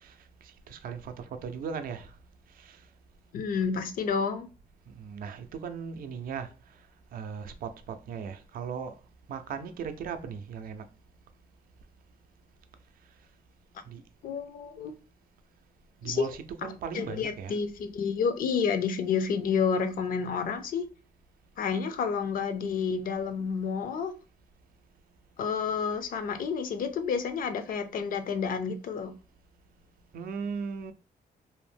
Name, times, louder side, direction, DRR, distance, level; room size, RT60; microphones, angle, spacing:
voice 1, 0.7-2.1 2.6-2.8 4.9-6.5 7.1-8.9 9.3-10.8 13.9-14.0 16.0-17.5 30.1-30.9, right 6 dB, 70° right, 0.4 m, -37 dB
voice 2, 3.3-4.5 14.2-14.9 16.0-16.3 16.9-20.9 21.6-24.1 25.4-29.1, left 6 dB, 65° left, 0.4 m, -30 dB
2.6 x 2.0 x 3.3 m
cardioid pair, 130°, 15 cm